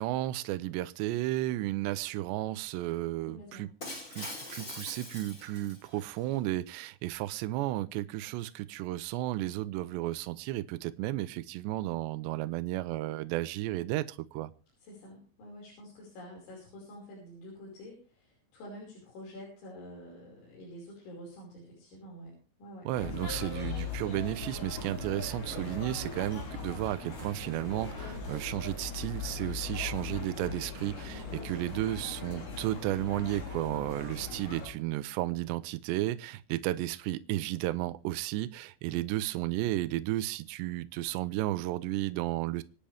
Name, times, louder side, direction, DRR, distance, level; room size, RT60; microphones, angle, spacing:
voice 1, 0.0-3.7 4.2-14.5 22.9-42.6, right 16 dB, 80° right, 2.7 m, -33 dB
voice 2, 3.3-3.6 14.8-22.9 31.2-31.7, equal, 65° left, 7.8 m, -48 dB
Shatter, 3.8-6.2, left 1 dB, 15° left, 4.3 m, -43 dB
sound 1, 22.9-34.7, left 4 dB, 45° left, 6.2 m, -39 dB
26.0 x 10.0 x 3.5 m
omnidirectional pair, 5.7 m